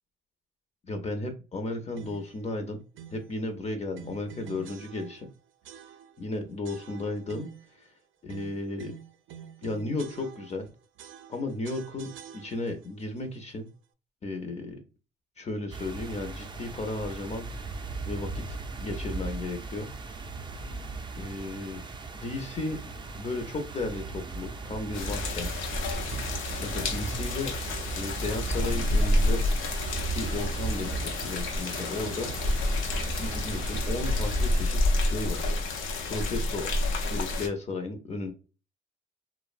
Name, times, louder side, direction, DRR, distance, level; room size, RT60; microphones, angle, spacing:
voice 1, 0.9-2.8 3.1-5.3 6.2-7.5 7.8-7.9 8.2-8.9 9.6-10.7 11.3-13.7 14.2-14.8 15.4-17.5 18.1-19.9 21.2-21.8 22.1-22.8 23.1-25.7 26.6-27.5 27.9-29.4 30.1-32.3 33.2-35.6 36.1-36.8 37.1-38.3, left 2 dB, 35° left, 5 dB, 0.5 m, -34 dB
sound 1, 2.0-2.4 3.0-3.3 3.9-5.3 5.6-6.3 6.6-7.7 8.3-10.7 11.0-12.9, right 9 dB, 80° right, 0.4 m, -47 dB
sound 2, 15.7-34.6, right 3 dB, 25° right, 0.4 m, -37 dB
sound 3, 24.9-37.5, left 2 dB, 85° left, 0.6 m, -29 dB
2.7 x 2.0 x 2.4 m, 0.33 s
cardioid pair, 90°, 20 cm